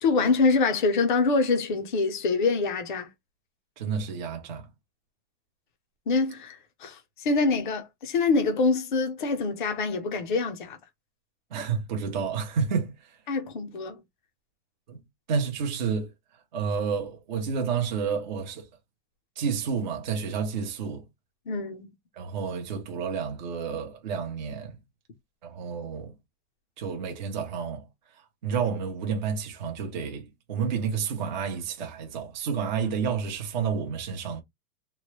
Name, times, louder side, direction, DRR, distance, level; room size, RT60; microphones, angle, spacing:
voice 1, 0.0-3.1 6.1-10.8 13.3-14.0 21.5-21.9, left 4 dB, 35° left, 0.5 m, -25 dB
voice 2, 3.8-4.7 11.5-13.2 14.9-15.0 15.3-16.1 16.5-18.7 19.4-21.0 22.2-24.8 25.4-26.1 26.8-27.9 28.4-34.4, right 6 dB, 30° right, 0.6 m, -30 dB
3.0 x 2.1 x 3.1 m
supercardioid pair, 180°, 47 cm